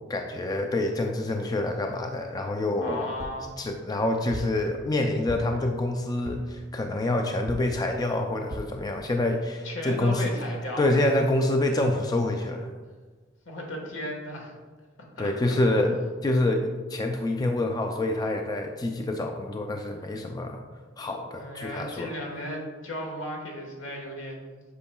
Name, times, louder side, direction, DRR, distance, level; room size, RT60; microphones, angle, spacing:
voice 1, 0.0-3.1 3.6-10.3 10.8-12.7 15.2-16.0 16.2-20.6 21.0-22.1, left 2 dB, 20° left, 4 dB, 0.3 m, -27 dB
voice 2, 2.8-3.5 9.6-10.9 13.4-14.5 15.2-15.8 21.4-24.6, left 1 dB, 70° left, 0 dB, 1.4 m, -35 dB
sound 1, 3.2-3.5 4.3-4.6 5.3-5.7 6.3-6.6 7.5-7.8 8.5-8.8 9.4-9.5 9.7-9.8, right 1 dB, 35° right, 0.5 m, -37 dB
8.3 x 5.4 x 2.2 m, 1.4 s
head